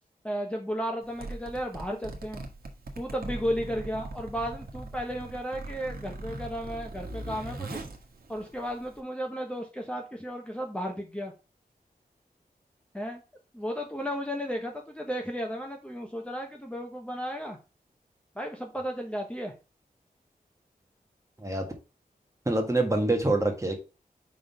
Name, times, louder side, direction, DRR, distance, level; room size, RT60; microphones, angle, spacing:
voice 1, 0.2-2.4 3.0-7.8 8.3-11.3 12.9-13.2 13.5-17.6 18.3-19.5, equal, 5° left, 1.1 m, -34 dB
Zipper (clothing), 1.0-9.0, right 2 dB, 80° right, 1.3 m, -40 dB
voice 2, 22.4-23.8, right 2 dB, 20° right, 1.6 m, -25 dB
5.4 x 3.8 x 5.4 m
wide cardioid pair, 85°, 16 cm